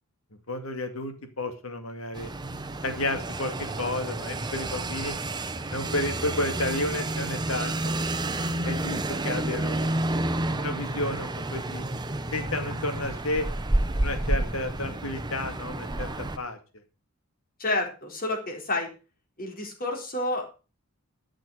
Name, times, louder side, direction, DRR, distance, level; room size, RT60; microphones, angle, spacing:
voice 1, 0.5-2.3 2.8-5.2 5.7-8.0 8.6-9.9 10.5-11.8 12.3-13.5 14.0-16.1 16.4-16.6, left 2 dB, 75° left, 7 dB, 2.3 m, -32 dB
sound 1, 2.1-16.4, right 1 dB, 20° right, 0.8 m, -30 dB
voice 2, 17.6-18.9 19.4-20.4, left 2 dB, 40° left, 0 dB, 3.9 m, -29 dB
13.0 x 6.4 x 6.4 m, 0.34 s
head